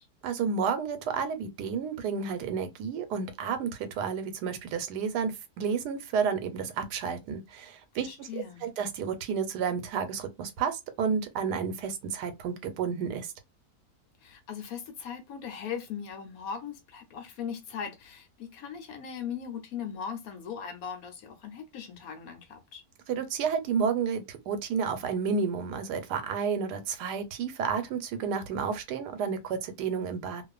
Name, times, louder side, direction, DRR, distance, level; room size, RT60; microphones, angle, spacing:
voice 1, 0.2-13.3 23.1-30.4, right 6 dB, 85° right, 1.2 m, -31 dB
voice 2, 7.9-8.7 14.2-22.8, left 7 dB, 65° left, 1.0 m, -39 dB
2.5 x 2.4 x 2.3 m
omnidirectional pair, 1.7 m